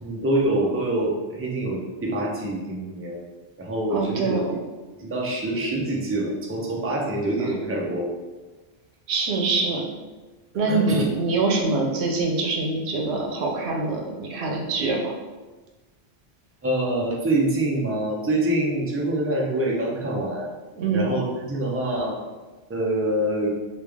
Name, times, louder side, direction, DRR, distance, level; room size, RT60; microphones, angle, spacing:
voice 1, 0.0-3.2 3.6-4.6 4.9-8.1 10.7-11.1 16.6-20.5 20.9-22.2 22.7-23.6, right 1 dB, 20° right, -2 dB, 0.3 m, -25 dB
voice 2, 3.9-4.5 9.1-9.9 10.6-15.1 20.8-21.1, right 3 dB, 85° right, 0 dB, 0.9 m, -24 dB
3.3 x 2.3 x 3.4 m, 1.3 s
omnidirectional pair, 1.1 m